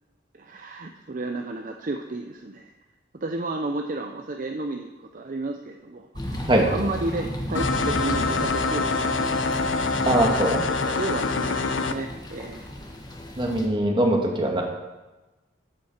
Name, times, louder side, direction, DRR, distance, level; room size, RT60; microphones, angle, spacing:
voice 1, 0.4-2.7 3.1-9.5 10.4-12.7, right 2 dB, 45° right, 4 dB, 0.6 m, -32 dB
sound 1, 6.1-13.7, equal, 20° left, 1.3 m, -34 dB
sound 2, 7.5-11.9, left 4 dB, 75° left, 0.7 m, -25 dB
voice 2, 10.0-11.0 13.4-14.6, right 1 dB, 25° right, 1 dB, 1.5 m, -22 dB
13.0 x 7.7 x 4.5 m, 1.1 s
head